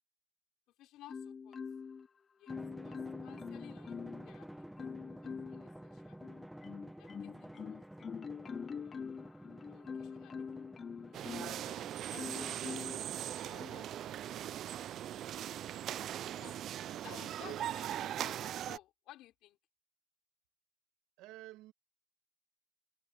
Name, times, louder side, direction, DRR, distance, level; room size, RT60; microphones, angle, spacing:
voice 1, 0.8-1.6 2.4-4.7 5.2-6.4 7.0-7.8 8.8-9.2 9.6-10.7 11.0-11.8 12.1-12.6 13.4-13.9 14.3-14.4 15.5-15.7 16.3-19.6, left 15 dB, 65° left, 5.1 m, -57 dB
Marimba xylophone, 1.1-2.1 2.5-4.3 4.8-5.7 6.2-11.6 12.2-13.0 13.6-13.8, left 6 dB, 30° left, 0.6 m, -44 dB
Drum, 2.5-13.5, equal, ahead, 0.9 m, -51 dB
sound 1, 11.1-18.8, right 11 dB, 50° right, 0.3 m, -40 dB
voice 2, 13.7-14.5 21.2-21.7, right 17 dB, 85° right, 2.2 m, -53 dB
cardioid pair, 150°, 0 cm